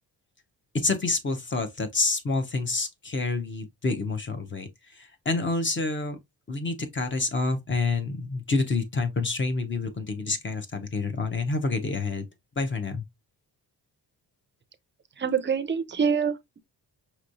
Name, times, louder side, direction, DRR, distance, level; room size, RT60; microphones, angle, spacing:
voice 1, 0.7-6.2 6.5-12.2 12.6-13.0, left 3 dB, 30° left, 0.7 m, -28 dB
voice 2, 15.2-16.6, right 6 dB, 30° right, 0.5 m, -26 dB
5.4 x 3.0 x 2.5 m
wide cardioid pair, 135°, 41 cm